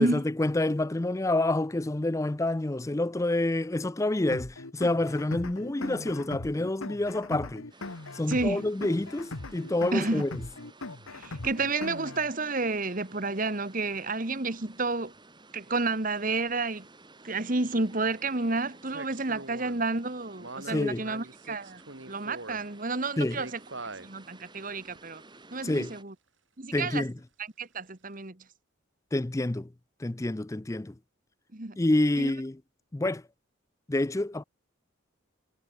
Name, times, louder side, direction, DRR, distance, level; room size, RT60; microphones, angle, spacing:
voice 1, 0.0-7.7 8.1-10.4 20.6-21.0 23.2-23.4 25.6-25.9 26.7-27.1 29.1-29.7 30.0-30.9 31.8-32.6 32.9-33.2 33.9-34.4, left 2 dB, 15° left, 0.4 m, -28 dB
sound 1, 4.3-12.3, left 2 dB, 90° left, 1.8 m, -40 dB
sound 2, 7.7-26.0, right 2 dB, 20° right, 5.5 m, -54 dB
voice 2, 8.3-8.7 9.9-10.2 11.1-15.1 15.5-16.9 17.2-21.8 22.1-23.6 24.0-25.2 25.5-26.1 26.6-27.0 27.6-28.4 31.5-31.8 32.2-32.3, right 3 dB, 40° right, 1.6 m, -30 dB
sound 3, 14.0-14.1 18.9-19.9 20.4-22.6 23.3-24.1 24.9-25.0, right 2 dB, 65° right, 4.7 m, -42 dB
head